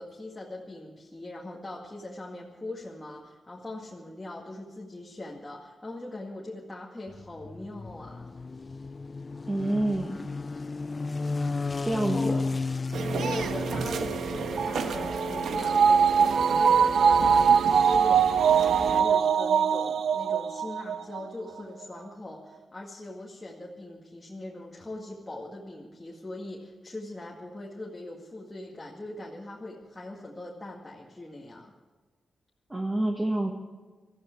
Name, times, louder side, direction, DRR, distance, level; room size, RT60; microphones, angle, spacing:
voice 1, 0.0-8.3 11.9-12.4 13.1-31.7, left 2 dB, 15° left, -4 dB, 2.1 m, -41 dB
sound 1, 7.1-14.7, left 3 dB, 30° left, 0.4 m, -33 dB
voice 2, 9.5-10.2 11.8-12.4 32.7-33.5, right 1 dB, 15° right, 1 dB, 1.6 m, -27 dB
sound 2, 12.9-19.0, right 5 dB, 85° right, 1.4 m, -33 dB
sound 3, 14.6-21.2 21.6-21.7, right 7 dB, 70° right, 0.6 m, -22 dB
19.0 x 14.5 x 4.6 m, 1.4 s
wide cardioid pair, 125°, 0 cm